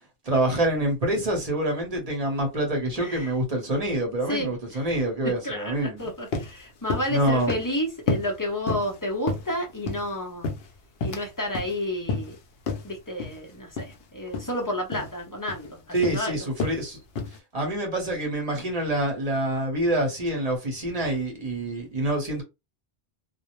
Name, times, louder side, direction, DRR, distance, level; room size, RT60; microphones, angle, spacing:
voice 1, 0.2-6.1 7.1-7.5 15.9-17.0 17.5-22.4, right 1 dB, 35° right, 1.0 m, -26 dB
voice 2, 3.0-3.3 4.3-4.8 5.2-10.5 11.0-12.4 12.8-16.5, equal, 25° left, 0.5 m, -31 dB
sound 1, 6.0-6.1 6.3-6.6 6.9-7.2 7.5-7.8 8.1-8.3 8.7-9.0 9.3-10.1 10.4-11.3 11.5-11.7 12.1-12.4 12.7-12.8 13.2-13.4 13.8-14.0 14.3-14.5 14.9-15.1 15.5-15.7 16.0-16.2 16.6-16.8 17.2-17.4, left 4 dB, 65° left, 0.8 m, -30 dB
2.4 x 2.0 x 2.9 m
omnidirectional pair, 1.1 m